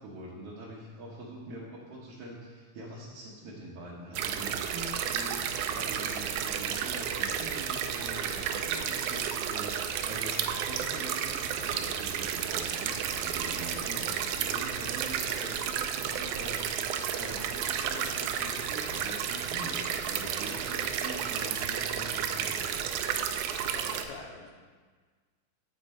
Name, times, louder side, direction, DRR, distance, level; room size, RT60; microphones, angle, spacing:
voice 1, 0.0-22.8, right 1 dB, 65° right, -5 dB, 1.5 m, -44 dB
sound 1, 4.1-24.0, right 8 dB, 85° right, 1.7 m, -32 dB
voice 2, 23.7-24.6, left 4 dB, 80° left, 1 dB, 2.7 m, -46 dB
8.5 x 7.6 x 4.3 m, 1.5 s
omnidirectional pair, 4.0 m